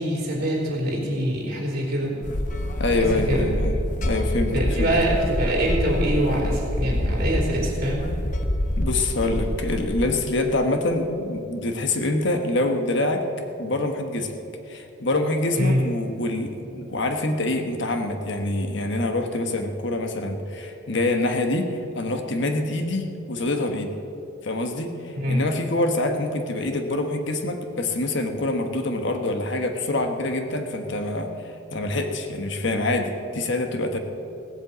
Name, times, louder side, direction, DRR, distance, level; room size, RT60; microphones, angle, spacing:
voice 1, 0.0-2.1 2.9-3.4 4.5-8.0 15.6-15.8 25.2-25.4, right 1 dB, 50° right, -2 dB, 3.8 m, -24 dB
sound 1, 2.2-10.1, left 1 dB, 40° left, 0.9 m, -26 dB
voice 2, 2.8-4.9 8.8-13.2 13.6-14.3 14.7-23.9 24.4-34.0, left 2 dB, 60° left, 5 dB, 1.2 m, -25 dB
17.0 x 8.0 x 8.2 m, 2.8 s
head